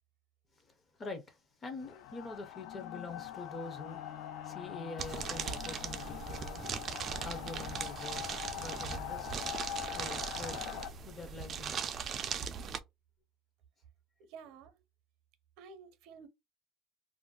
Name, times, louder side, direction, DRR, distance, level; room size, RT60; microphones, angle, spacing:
voice 1, 0.6-6.6 7.1-9.4 9.9-11.8, left 3 dB, 20° left, 0.5 m, -46 dB
sound 1, 1.8-10.9, left 11 dB, 80° left, 0.3 m, -43 dB
Bowed string instrument, 3.6-9.2, left 5 dB, 50° left, 0.8 m, -54 dB
sound 2, 5.0-12.8, right 7 dB, 30° right, 0.3 m, -39 dB
voice 2, 14.2-14.8 15.6-16.3, right 5 dB, 70° right, 0.6 m, -52 dB
2.5 x 2.1 x 3.6 m
cardioid pair, 180°, 0 cm